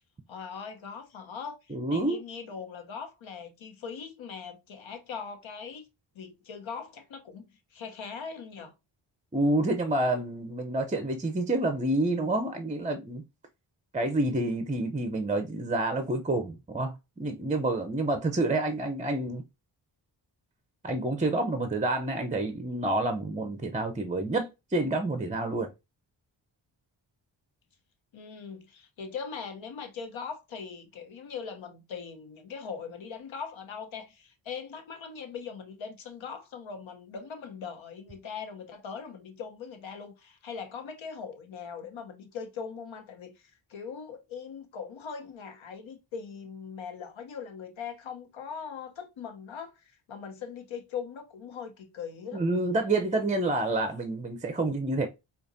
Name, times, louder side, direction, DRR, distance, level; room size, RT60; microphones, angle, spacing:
voice 1, 0.3-5.9 6.1-8.7 28.1-43.3 43.7-52.4, left 6 dB, 90° left, 1.0 m, -40 dB
voice 2, 1.7-2.2 9.3-13.2 13.9-19.4 20.8-25.7 52.3-55.1, right 2 dB, 15° right, 0.6 m, -28 dB
4.8 x 2.5 x 2.6 m
cardioid pair, 70°, 46 cm